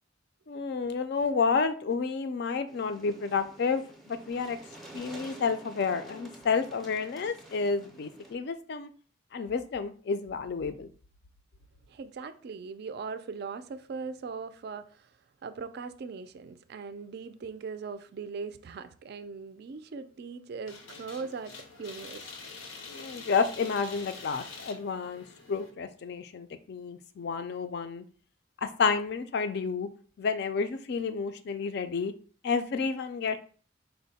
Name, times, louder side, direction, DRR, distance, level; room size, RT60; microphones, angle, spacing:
voice 1, 0.5-4.6 4.9-8.9 9.3-10.9 22.9-28.0 28.6-29.9 30.2-32.1 32.4-33.4, left 5 dB, 55° left, 0.4 m, -30 dB
sound 1, 2.7-8.3, right 1 dB, ahead, 0.5 m, -49 dB
voice 2, 11.9-15.1 15.4-22.3, right 5 dB, 55° right, 0.3 m, -40 dB
sound 2, 20.7-25.7, left 4 dB, 90° left, 0.7 m, -46 dB
4.4 x 2.1 x 4.0 m
head